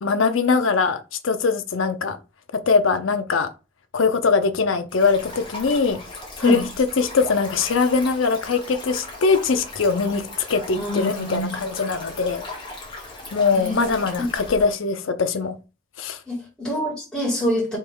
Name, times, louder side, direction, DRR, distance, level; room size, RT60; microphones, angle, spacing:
voice 1, 0.0-2.2 2.5-3.5 3.9-6.0 6.4-6.6 7.0-12.5 13.3-15.6 16.0-16.2, left 4 dB, 80° left, 0.6 m, -22 dB
Stream, 4.9-14.7, left 2 dB, 25° left, 1.2 m, -38 dB
voice 2, 10.7-11.6 13.5-13.8 14.2-14.3 16.3-17.8, left 1 dB, 5° left, 1.8 m, -25 dB
3.5 x 3.0 x 4.6 m
head